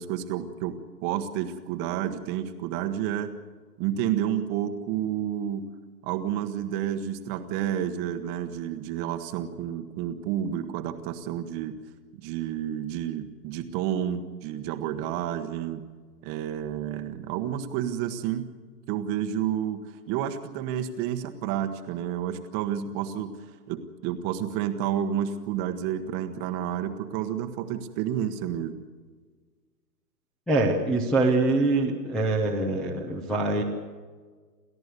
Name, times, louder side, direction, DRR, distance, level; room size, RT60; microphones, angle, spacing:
voice 1, 0.0-3.3 3.8-5.7 6.0-11.8 12.2-15.8 16.2-18.5 18.9-23.4 23.7-28.8, right 10 dB, 20° right, 8 dB, 1.2 m, -30 dB
voice 2, 30.5-33.6, right 2 dB, ahead, 2 dB, 0.8 m, -24 dB
29.0 x 14.0 x 8.2 m, 1.5 s
hypercardioid pair, 145°, 50 cm